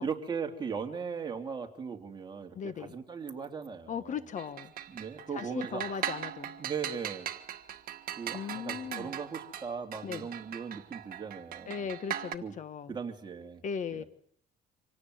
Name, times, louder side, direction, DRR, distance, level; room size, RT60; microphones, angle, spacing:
voice 1, 0.0-4.2 4.9-6.1 6.6-7.3 8.2-11.9 12.4-12.5 12.9-13.6 13.9-14.1, right 6 dB, 25° right, 2 dB, 3.0 m, -38 dB
voice 2, 2.5-3.0 3.9-4.7 5.3-6.6 8.3-9.1 10.0-10.3 11.7-12.9 13.6-14.0, left 7 dB, 45° left, 13 dB, 1.3 m, -37 dB
sound 1, 4.4-12.4, right 10 dB, 60° right, 1.6 m, -40 dB
26.0 x 18.0 x 7.9 m, 0.65 s
cardioid pair, 110°, 17 cm